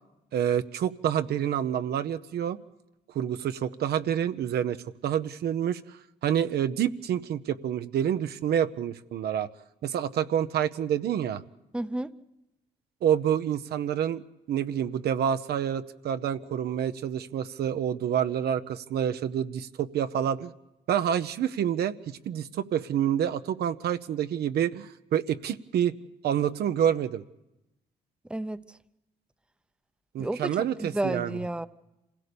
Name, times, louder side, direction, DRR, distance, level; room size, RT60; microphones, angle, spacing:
voice 1, 0.3-2.6 3.1-9.5 9.8-11.4 13.0-14.2 14.5-20.5 20.9-26.0 26.2-27.2 30.1-31.4, right 9 dB, 70° right, 10 dB, 0.8 m, -28 dB
voice 2, 11.7-12.1 28.3-28.6 30.2-31.7, right 1 dB, 5° right, 12 dB, 0.7 m, -31 dB
26.0 x 16.5 x 6.9 m, 0.94 s
supercardioid pair, 70°, 17 cm